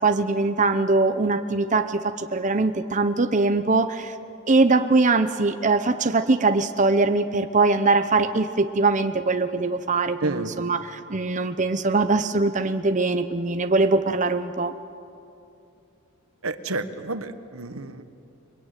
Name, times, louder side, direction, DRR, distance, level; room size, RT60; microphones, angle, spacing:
voice 1, 0.0-4.1 4.5-14.7, right 3 dB, 35° right, 8 dB, 0.8 m, -22 dB
voice 2, 10.2-10.5 16.4-18.0, right 3 dB, 80° right, 10 dB, 1.4 m, -30 dB
29.5 x 22.5 x 9.1 m, 2.6 s
head